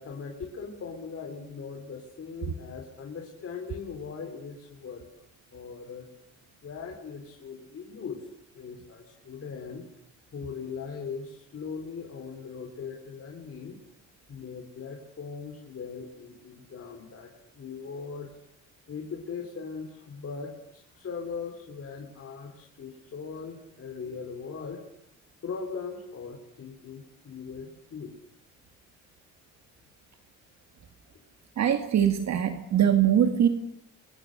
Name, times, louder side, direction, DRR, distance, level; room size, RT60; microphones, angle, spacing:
voice 1, 0.0-5.1 5.5-6.1 6.6-9.9 10.3-13.8 14.3-18.3 18.9-24.8 25.4-28.1, left 5 dB, 50° left, 1 dB, 4.2 m, -39 dB
voice 2, 31.6-33.5, right 9 dB, 65° right, 7 dB, 2.2 m, -22 dB
29.5 x 23.5 x 6.8 m, 0.71 s
cardioid pair, 90°, 30 cm